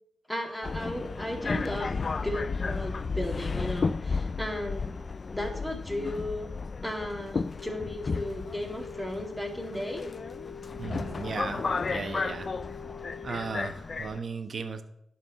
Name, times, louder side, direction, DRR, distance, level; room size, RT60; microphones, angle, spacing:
voice 1, 0.3-1.9 2.2-4.9 5.3-6.5 6.8-10.0, left 1 dB, 5° left, 2 dB, 2.2 m, -35 dB
Subway metro underground, 0.6-14.2, left 4 dB, 50° left, 0.4 m, -33 dB
sound 1, 7.6-13.7, left 6 dB, 85° left, 2.2 m, -44 dB
voice 2, 10.8-12.5 13.2-14.8, right 5 dB, 55° right, 9 dB, 1.0 m, -36 dB
11.0 x 4.7 x 6.7 m, 0.78 s
cardioid pair, 65°, 0 cm